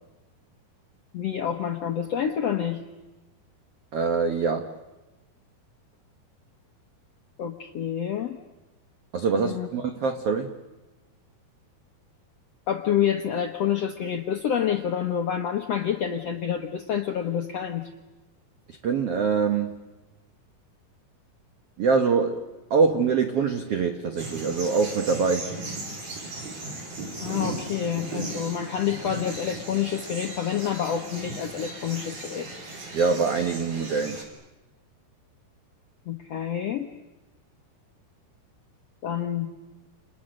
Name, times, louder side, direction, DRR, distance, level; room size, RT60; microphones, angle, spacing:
voice 1, 1.1-2.8 7.4-8.4 9.4-9.7 12.7-17.9 27.2-32.5 36.1-36.9 39.0-39.5, left 9 dB, 80° left, 4 dB, 1.4 m, -28 dB
voice 2, 3.9-4.7 9.1-10.6 18.7-19.9 21.8-25.5 32.9-34.2, right 5 dB, 90° right, 6 dB, 1.3 m, -24 dB
sound 1, 24.2-34.2, right 2 dB, 50° right, 5.6 m, -37 dB
29.5 x 29.0 x 6.5 m, 1.1 s
omnidirectional pair, 4.7 m